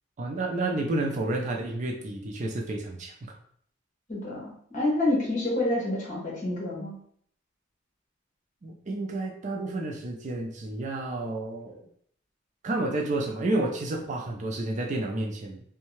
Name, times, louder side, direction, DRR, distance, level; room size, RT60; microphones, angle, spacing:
voice 1, 0.2-3.1 8.6-11.9 12.6-15.6, right 2 dB, 40° right, 0 dB, 0.4 m, -30 dB
voice 2, 4.1-7.0, left 1 dB, 40° left, -5 dB, 1.1 m, -28 dB
2.7 x 2.2 x 3.0 m, 0.63 s
head